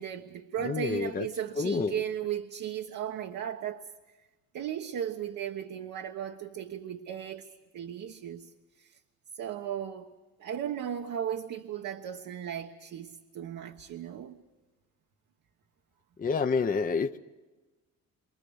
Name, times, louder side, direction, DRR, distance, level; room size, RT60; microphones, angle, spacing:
voice 1, 0.0-3.9 4.5-7.5 7.7-8.5 8.8-9.0 9.3-10.1 10.4-14.4, right 9 dB, 75° right, 1.3 m, -36 dB
voice 2, 0.6-1.3 1.6-1.9 16.2-17.2, left 4 dB, 30° left, 0.8 m, -28 dB
27.5 x 24.5 x 6.5 m
cardioid pair, 90°, 30 cm